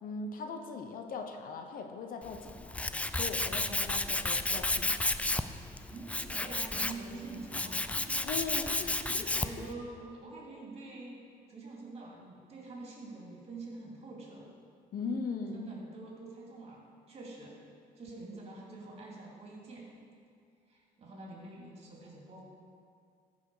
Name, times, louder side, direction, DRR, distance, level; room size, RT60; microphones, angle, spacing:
voice 1, 0.0-2.8 3.1-4.9 8.2-9.5 14.9-15.7, left 4 dB, 55° left, 5 dB, 0.9 m, -39 dB
Tools, 2.2-9.7, left 2 dB, 10° left, 0.3 m, -32 dB
voice 2, 5.9-11.2 11.5-14.5 15.5-16.8 17.1-17.6 18.0-19.9 20.7-22.4, right 3 dB, 35° right, -3 dB, 3.0 m, -46 dB
14.5 x 5.6 x 4.9 m, 2.3 s
cardioid pair, 110°, 17 cm